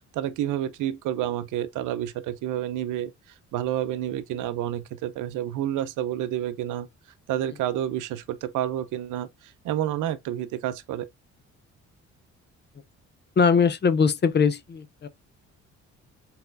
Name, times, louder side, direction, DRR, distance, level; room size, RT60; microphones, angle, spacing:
voice 1, 0.0-3.1 3.5-6.9 7.3-11.1, right 11 dB, 90° right, 0.7 m, -29 dB
voice 2, 13.4-15.1, left 5 dB, 35° left, 0.6 m, -21 dB
4.3 x 4.2 x 2.6 m
cardioid pair, 90°, 30 cm